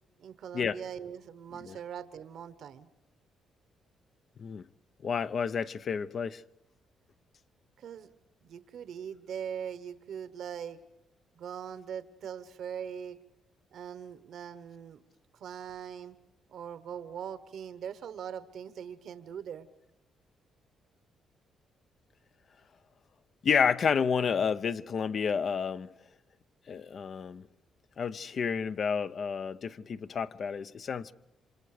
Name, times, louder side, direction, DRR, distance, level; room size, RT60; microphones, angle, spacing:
voice 1, 0.2-2.9 7.8-8.1 8.4-10.8 11.3-13.2 13.7-15.0 15.3-16.1 16.5-19.7, right 8 dB, 70° right, 1.2 m, -41 dB
voice 2, 5.0-6.4 23.4-25.9 26.7-27.5 28.0-31.1, left 6 dB, 50° left, 0.7 m, -30 dB
28.0 x 26.0 x 5.0 m
cardioid pair, 90°, 0 cm